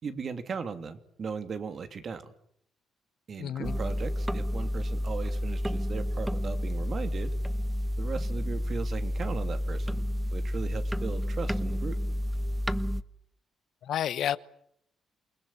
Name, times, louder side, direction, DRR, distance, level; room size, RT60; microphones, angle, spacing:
voice 1, 0.0-2.3 3.3-7.3 8.0-10.1 10.3-12.0, right 5 dB, 50° right, 2.9 m, -37 dB
voice 2, 3.4-3.8 13.9-14.4, left 10 dB, 70° left, 1.0 m, -30 dB
sound 1, 3.6-13.0, equal, 5° right, 1.1 m, -30 dB
28.0 x 19.5 x 8.7 m
cardioid pair, 90°, 0 cm